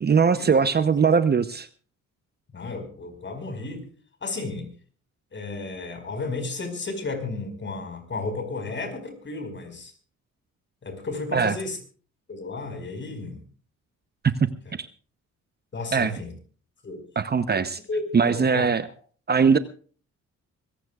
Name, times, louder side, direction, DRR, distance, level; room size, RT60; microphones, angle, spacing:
voice 1, 0.0-1.7 11.3-11.5 14.2-14.5 14.8-14.9 15.9-16.1 17.2-17.8 18.1-18.9 19.3-19.6, right 6 dB, 35° right, 12 dB, 0.8 m, -20 dB
voice 2, 2.5-3.9 4.2-4.7 5.3-9.9 10.8-11.8 12.3-13.4 15.7-16.3 16.8-17.0 17.5-18.7, left 3 dB, 40° left, 7 dB, 5.0 m, -33 dB
24.5 x 16.0 x 2.4 m, 0.40 s
cardioid pair, 90°, 30 cm